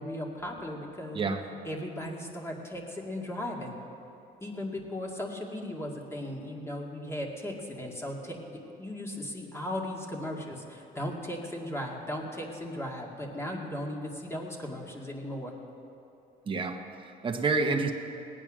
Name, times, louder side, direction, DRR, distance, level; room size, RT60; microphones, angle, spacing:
voice 1, 0.0-1.2 1.6-3.8 4.4-15.5, left 1 dB, 15° left, 0 dB, 2.2 m, -37 dB
voice 2, 16.5-17.9, right 4 dB, 30° right, 3 dB, 1.2 m, -29 dB
19.0 x 9.1 x 6.3 m, 2.8 s
cardioid pair, 110°, 17 cm